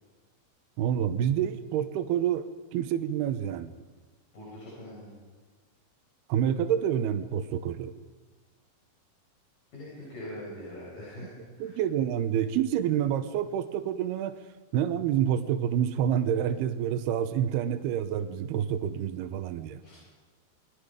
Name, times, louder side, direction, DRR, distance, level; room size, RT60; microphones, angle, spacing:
voice 1, 0.8-3.7 6.3-7.9 11.6-14.4 14.7-19.8, right 9 dB, 75° right, 8 dB, 2.8 m, -28 dB
voice 2, 4.3-5.1 9.7-11.3 11.6-11.8 19.8-19.9, left 1 dB, 50° left, -7 dB, 9.5 m, -42 dB
29.5 x 21.5 x 5.2 m, 1.3 s
omnidirectional pair, 4.9 m